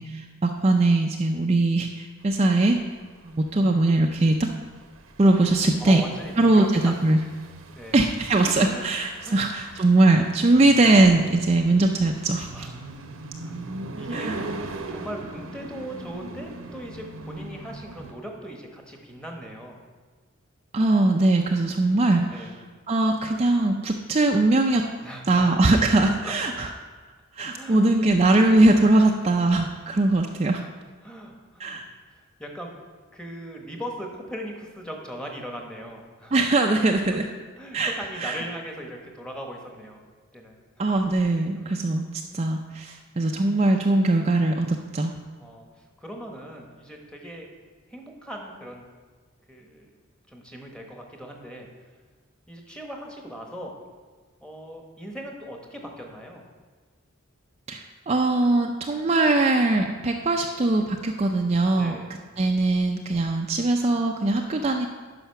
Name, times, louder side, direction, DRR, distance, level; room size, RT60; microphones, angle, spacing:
voice 1, 0.0-2.8 3.2-4.5 5.2-6.0 6.4-7.2 7.9-12.7 14.1-14.4 20.7-22.5 22.9-24.8 25.3-26.7 27.4-30.6 31.6-31.8 36.3-37.3 37.7-37.9 38.2-38.4 40.8-42.1 42.3-45.1 57.7-62.0 62.4-64.9, right 2 dB, 30° right, 3 dB, 0.4 m, -21 dB
sound 1, 2.3-18.1, right 2 dB, 80° right, 0.8 m, -40 dB
voice 2, 5.8-6.9 7.7-8.1 8.6-8.9 9.2-9.5 12.5-12.7 13.4-13.6 14.0-14.3 14.6-19.8 22.3-22.6 25.0-25.6 26.0-26.3 27.5-27.9 28.9-29.4 31.0-31.8 32.4-32.7 33.1-36.3 37.6-40.0 40.3-40.6 41.6-41.7 45.4-47.5 47.9-48.9 49.5-49.9 50.3-51.7 52.5-53.7 54.4-56.4 61.7-62.1, equal, 5° left, 1 dB, 1.1 m, -39 dB
10.0 x 5.8 x 5.7 m, 1.5 s
head